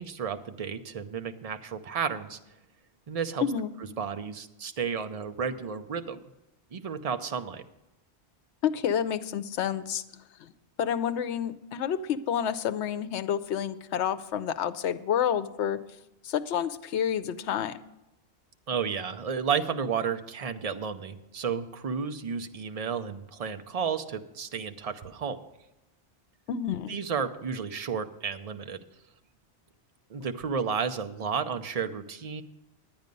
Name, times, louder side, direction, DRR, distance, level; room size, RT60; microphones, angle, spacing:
voice 1, 0.0-2.4 3.1-3.4 4.0-6.2 6.7-7.6 18.7-25.4 26.9-28.8 30.1-32.4, right 6 dB, 40° right, 9 dB, 0.6 m, -32 dB
voice 2, 3.4-3.7 8.6-10.0 10.4-10.5 10.8-15.8 16.2-17.8 26.5-26.9, left 9 dB, 80° left, 13 dB, 0.9 m, -29 dB
10.5 x 9.4 x 5.3 m, 0.93 s
omnidirectional pair, 1.1 m